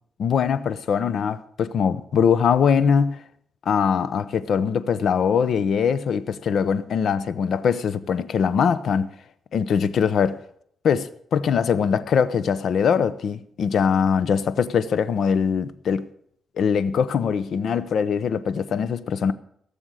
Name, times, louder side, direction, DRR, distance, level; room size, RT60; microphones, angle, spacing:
voice 1, 0.2-3.2 3.7-9.1 9.5-10.4 10.8-16.1 16.6-19.3, left 7 dB, 65° left, 0.8 m, -22 dB
17.5 x 7.0 x 6.4 m
cardioid pair, 125°, 0 cm